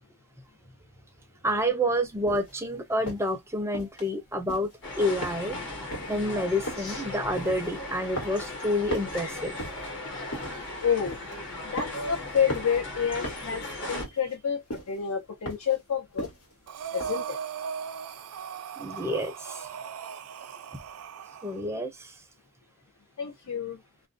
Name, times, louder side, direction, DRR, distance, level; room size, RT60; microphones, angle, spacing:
voice 1, 1.4-4.7 5.0-5.6 6.1-9.6 18.8-19.7 21.4-22.2, equal, 10° right, 0.5 m, -28 dB
sound 1, 2.3-2.5 3.1-3.3 3.7-4.1 4.4-4.8 5.2-5.6 5.9-6.2 6.7-7.0 7.4-7.8 8.2-8.6 8.9-9.9 10.3-10.7 11.1-11.4 11.8-12.2 12.5-12.8 13.2-13.5 14.0-14.4 14.7-15.0 15.5-15.8 16.2-16.5 17.0-17.2, equal, 90° left, 1.4 m, -37 dB
sound 2, 4.8-14.0, left 2 dB, 55° left, 1.2 m, -37 dB
voice 2, 10.8-11.2 11.7-16.3 16.9-17.4 23.2-23.8, left 7 dB, 75° left, 0.6 m, -29 dB
Breathing, 16.7-21.6, right 7 dB, 70° right, 0.4 m, -38 dB
2.5 x 2.1 x 2.5 m
head